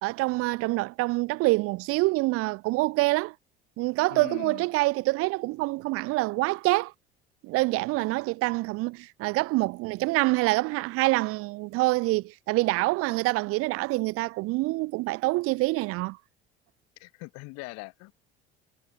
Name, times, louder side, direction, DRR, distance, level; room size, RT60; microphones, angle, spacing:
voice 1, 0.0-3.3 3.8-6.9 7.4-16.2, right 22 dB, 45° right, 0.8 m, -26 dB
voice 2, 4.1-4.6 17.0-18.1, left 25 dB, 55° left, 4.4 m, -41 dB
figure-of-eight pair, 60°, 31 cm